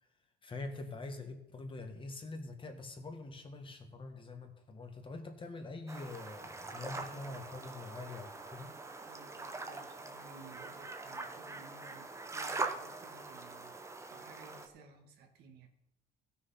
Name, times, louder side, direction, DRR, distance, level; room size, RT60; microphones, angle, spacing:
voice 1, 0.4-8.7, left 2 dB, 30° left, 5 dB, 1.7 m, -45 dB
sound 1, 5.9-14.7, right 3 dB, 15° right, 1.1 m, -43 dB
voice 2, 9.0-15.7, right 3 dB, 75° right, 5 dB, 1.9 m, -57 dB
15.5 x 6.5 x 5.8 m, 0.84 s
cardioid pair, 110°, 17 cm